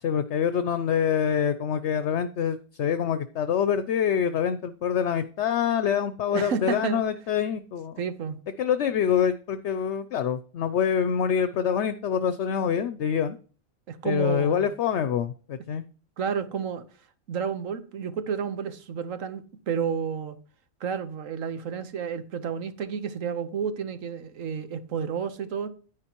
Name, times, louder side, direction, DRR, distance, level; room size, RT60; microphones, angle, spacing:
voice 1, 0.0-8.0 8.6-13.4 14.0-15.8, left 8 dB, 60° left, 0.9 m, -25 dB
voice 2, 6.3-7.0 8.0-8.4 13.9-14.7 16.2-16.8 17.3-20.4 20.8-25.7, right 6 dB, 75° right, 1.4 m, -31 dB
10.0 x 9.7 x 3.0 m
omnidirectional pair, 1.4 m